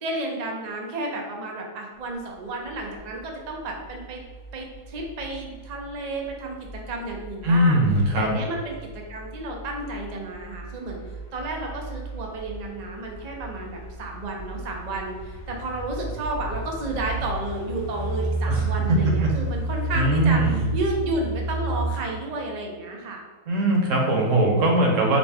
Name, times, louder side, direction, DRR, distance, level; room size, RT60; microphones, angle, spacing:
voice 1, 0.0-4.2 4.5-7.8 8.1-11.0 11.3-23.2, right 2 dB, 90° right, 0 dB, 0.3 m, -32 dB
sound 1, 2.7-21.8, right 2 dB, 60° left, 0.9 m, -33 dB
voice 2, 7.4-8.3 18.5-18.6 18.9-19.3 19.9-20.6 23.5-25.2, right 1 dB, 60° right, 0 dB, 1.1 m, -20 dB
5.2 x 2.1 x 3.4 m, 1.5 s
omnidirectional pair, 1.7 m